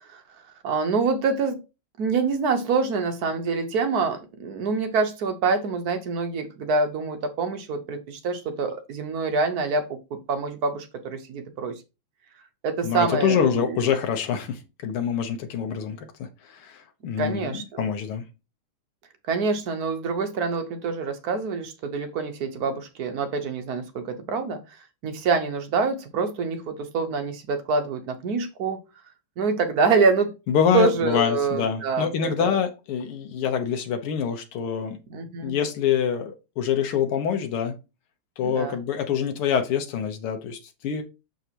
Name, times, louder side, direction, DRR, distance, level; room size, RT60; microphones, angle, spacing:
voice 1, 0.6-1.6 2.0-11.8 12.6-13.8 17.2-17.6 19.3-24.6 25.0-28.8 29.4-30.3 30.7-32.6 35.1-35.6 38.4-38.8, right 4 dB, 55° right, 1.2 m, -26 dB
voice 2, 12.8-18.3 30.5-35.0 35.4-37.7 38.4-41.0, left 7 dB, 85° left, 1.9 m, -26 dB
6.4 x 6.0 x 2.9 m
omnidirectional pair, 2.4 m